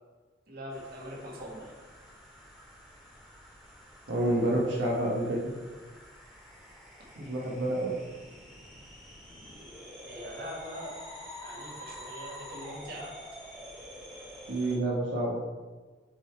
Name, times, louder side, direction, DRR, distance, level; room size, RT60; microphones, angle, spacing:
voice 1, 0.5-1.7 10.1-11.0 11.4-13.1, equal, 55° right, -3 dB, 1.6 m, -42 dB
sound 1, 0.7-14.8, equal, ahead, 2.1 m, -48 dB
voice 2, 4.1-5.5 7.2-8.0 14.5-15.4, right 1 dB, 85° right, -4 dB, 1.1 m, -28 dB
7.7 x 3.9 x 4.5 m, 1.3 s
head